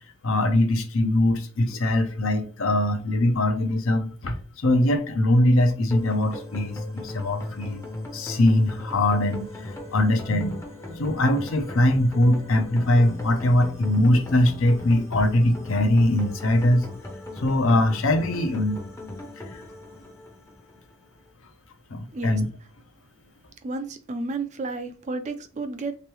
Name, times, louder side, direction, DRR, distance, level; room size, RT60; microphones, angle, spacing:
voice 1, 0.2-4.3 4.6-7.8 8.1-10.6 10.9-16.9 17.4-18.8 19.5-19.6 21.9-22.4, left 1 dB, 65° left, 0.6 m, -22 dB
sound 1, 5.9-21.0, left 2 dB, 15° left, 0.6 m, -38 dB
voice 2, 23.6-26.0, right 3 dB, 35° right, 0.4 m, -32 dB
3.3 x 3.0 x 3.1 m
head